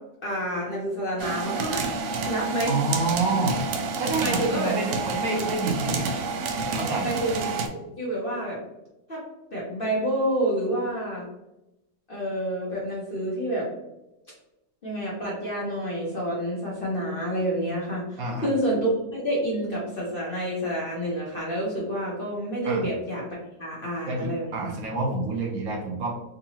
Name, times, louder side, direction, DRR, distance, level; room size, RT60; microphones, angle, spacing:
voice 1, 0.2-1.9 2.3-2.7 4.2-4.7 7.0-8.6 9.1-9.2 9.5-11.3 12.1-13.7 14.8-23.2 23.6-24.7, right 1 dB, 45° left, -5 dB, 0.8 m, -28 dB
sound 1, 1.2-7.7, right 4 dB, 85° right, 0.6 m, -29 dB
voice 2, 2.7-3.7 4.0-6.4 6.7-7.1 18.2-18.5 22.6-22.9 24.1-26.2, right 3 dB, 65° right, 0 dB, 1.1 m, -28 dB
3.7 x 2.8 x 2.8 m, 0.93 s
omnidirectional pair, 1.8 m